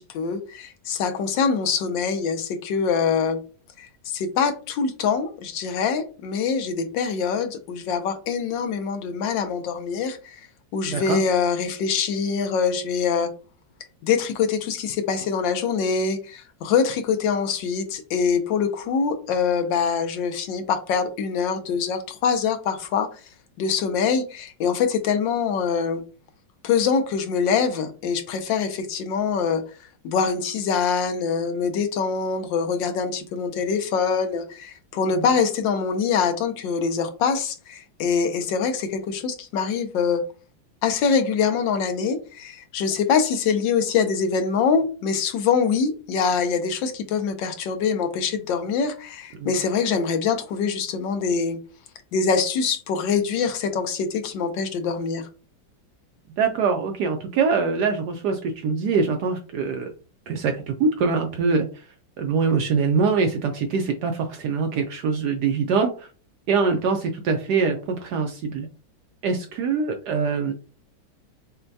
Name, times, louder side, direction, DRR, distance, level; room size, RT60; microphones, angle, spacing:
voice 1, 0.0-3.4 3.8-10.4 10.7-13.3 14.0-23.1 23.6-26.0 26.6-29.6 30.0-40.2 40.8-51.6 52.1-55.3, left 6 dB, 75° left, 1.3 m, -24 dB
voice 2, 10.9-11.2 35.1-35.3 49.4-49.5 56.4-59.9 60.3-61.8 62.2-66.1 66.5-68.7 69.2-70.5, right 5 dB, 75° right, 1.0 m, -23 dB
6.5 x 2.2 x 2.6 m
omnidirectional pair, 2.1 m